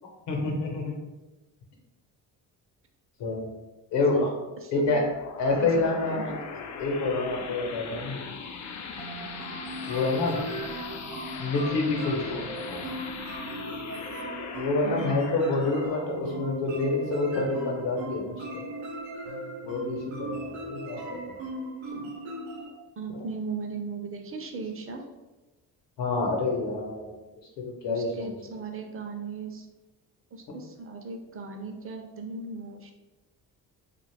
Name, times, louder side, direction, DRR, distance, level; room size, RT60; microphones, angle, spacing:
voice 1, 0.3-0.9 3.2-3.5 3.9-4.3 4.7-5.1 5.4-6.4 6.8-8.2 9.9-10.4 11.4-12.9 14.5-18.4 19.6-21.3 23.1-23.2 26.0-27.1 27.6-28.3, left 3 dB, 70° left, 1 dB, 0.9 m, -27 dB
voice 2, 4.6-5.0 5.6-6.5 14.8-15.3 21.8-22.1 23.0-25.0 27.9-29.7 30.3-32.9, right 4 dB, 30° right, 4 dB, 0.6 m, -37 dB
sound 1, 4.8-17.9, left 5 dB, 40° left, 0.4 m, -40 dB
sound 2, 9.0-22.7, right 1 dB, 80° right, 0.8 m, -38 dB
2.5 x 2.4 x 3.4 m, 1.1 s
supercardioid pair, 55°, 45 cm